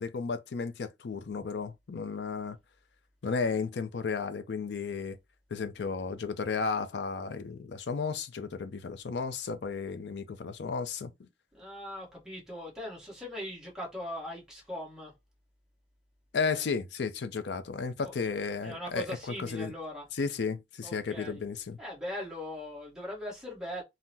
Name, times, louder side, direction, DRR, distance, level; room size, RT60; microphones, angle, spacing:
voice 1, 0.0-2.6 3.2-5.2 5.5-11.3 16.3-19.7 20.2-21.8, left 5 dB, 75° left, 0.4 m, -33 dB
voice 2, 11.5-15.1 18.0-18.1 18.6-20.0 20.8-21.4 21.8-23.8, left 1 dB, 5° right, 1.1 m, -40 dB
3.6 x 2.0 x 2.7 m
head